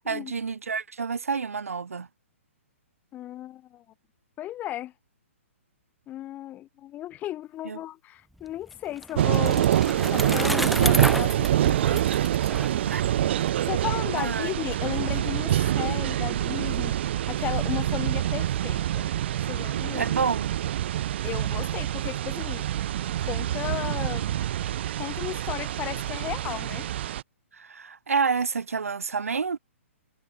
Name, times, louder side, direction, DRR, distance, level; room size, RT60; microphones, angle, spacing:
voice 1, 0.0-2.1 7.6-7.8 12.9-13.0 14.1-14.5 19.9-20.5 27.5-29.6, right 5 dB, 85° right, 2.9 m, -29 dB
voice 2, 3.1-3.8 4.4-4.9 6.1-9.7 10.1-12.0 13.6-19.1 19.5-20.1 21.2-22.7 23.2-24.3 25.0-26.9, left 13 dB, 20° left, 4.0 m, -35 dB
Bicycle, 8.4-13.5, equal, ahead, 0.6 m, -32 dB
sound 1, 9.1-27.2, right 12 dB, 50° right, 1.9 m, -26 dB
hypercardioid pair, 140°, 7 cm